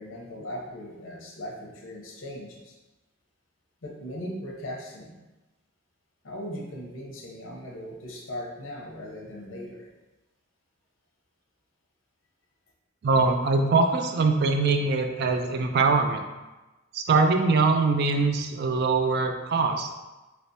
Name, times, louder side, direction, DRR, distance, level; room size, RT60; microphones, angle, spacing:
voice 1, 0.0-2.7 3.8-5.2 6.2-9.9, equal, 70° left, -1 dB, 0.8 m, -38 dB
voice 2, 13.0-16.2 16.9-19.9, right 4 dB, 55° right, 5 dB, 0.4 m, -23 dB
3.4 x 3.0 x 2.7 m, 1.1 s
head